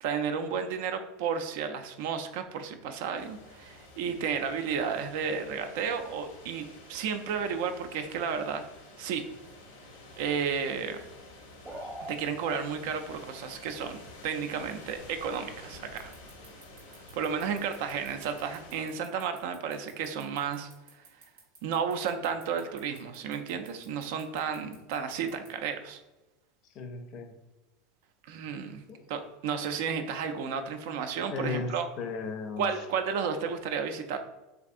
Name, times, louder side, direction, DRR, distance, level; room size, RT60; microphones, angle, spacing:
voice 1, 0.0-8.6 9.0-9.2 10.2-11.0 12.1-14.0 14.2-16.1 17.1-20.7 21.6-26.0 28.3-28.8 29.1-31.9 32.6-34.2, right 6 dB, 70° right, 8 dB, 0.3 m, -32 dB
sound 1, 3.2-18.9, left 2 dB, 90° left, 0.7 m, -50 dB
sound 2, 11.6-12.2, right 1 dB, 15° right, 0.7 m, -39 dB
sound 3, 16.0-25.5, right 5 dB, 85° right, 0.7 m, -54 dB
voice 2, 26.7-27.3 28.9-29.0 31.3-32.7, left 4 dB, 50° left, 6 dB, 0.4 m, -35 dB
3.4 x 2.4 x 2.5 m, 1.1 s
hypercardioid pair, 100°, 0 cm